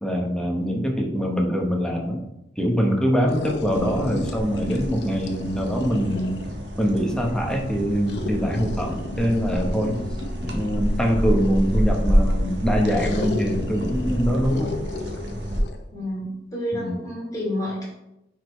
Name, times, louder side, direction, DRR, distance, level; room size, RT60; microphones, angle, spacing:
voice 1, 0.0-2.2 2.6-6.4 6.8-10.0 10.4-14.8 16.7-17.0, equal, 5° left, 0 dB, 1.1 m, -24 dB
sound 1, 3.3-6.6 8.1-11.9 12.8-15.8, left 1 dB, 70° left, 0.8 m, -34 dB
sound 2, 3.7-15.6, equal, 70° right, 1.3 m, -28 dB
sound 3, 7.6-15.9, equal, 35° right, 2.4 m, -41 dB
voice 2, 15.9-17.9, left 1 dB, 20° left, -5 dB, 2.8 m, -29 dB
9.3 x 4.7 x 3.3 m, 0.88 s
head